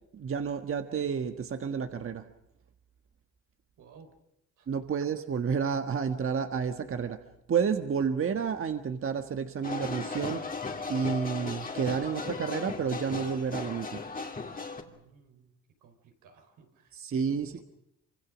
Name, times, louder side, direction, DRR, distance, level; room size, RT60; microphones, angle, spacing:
voice 1, 0.1-2.3 4.7-7.2 7.5-10.4 10.9-14.0 16.9-17.6, right 6 dB, 45° right, 7 dB, 1.5 m, -30 dB
voice 2, 3.8-4.1 4.6-4.7 14.8-15.5 15.8-17.6, right 5 dB, 85° right, 5 dB, 4.5 m, -56 dB
sound 1, 9.6-14.8, left 4 dB, 30° left, 2.6 m, -36 dB
26.0 x 25.0 x 6.2 m, 0.81 s
cardioid pair, 90°, 30 cm